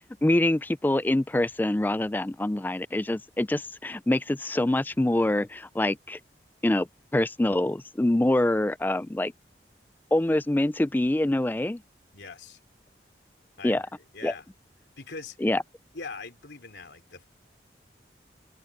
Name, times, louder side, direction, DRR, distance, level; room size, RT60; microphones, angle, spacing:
voice 1, 0.2-6.2 6.6-9.3 10.1-11.8 13.6-13.8 14.2-14.3 15.4-15.6, left 1 dB, 10° left, 0.3 m, -25 dB
voice 2, 12.1-12.6 13.6-14.5 15.0-15.4 15.9-17.3, left 4 dB, 80° left, 3.1 m, -42 dB
head